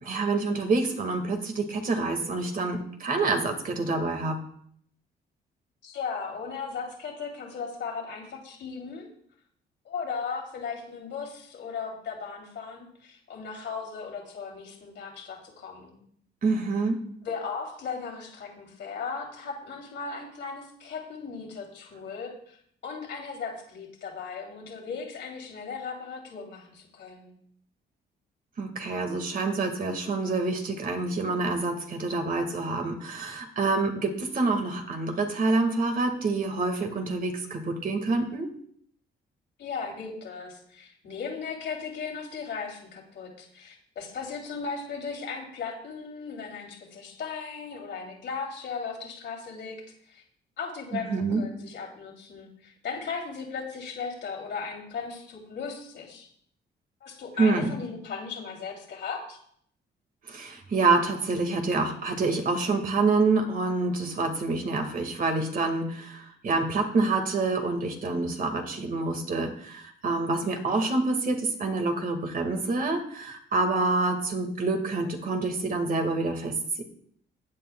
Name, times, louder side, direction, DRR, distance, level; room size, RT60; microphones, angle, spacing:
voice 1, 0.0-4.4 16.4-17.0 28.6-38.5 50.9-51.4 57.4-57.8 60.3-76.8, right 3 dB, 45° right, 4 dB, 1.8 m, -27 dB
voice 2, 5.8-9.1 9.8-15.9 17.2-22.6 22.8-27.3 39.6-49.8 50.1-50.2 50.6-56.3 57.0-59.4, left 5 dB, 65° left, 1 dB, 2.8 m, -37 dB
15.0 x 8.6 x 2.3 m, 0.64 s
cardioid pair, 90°, 20 cm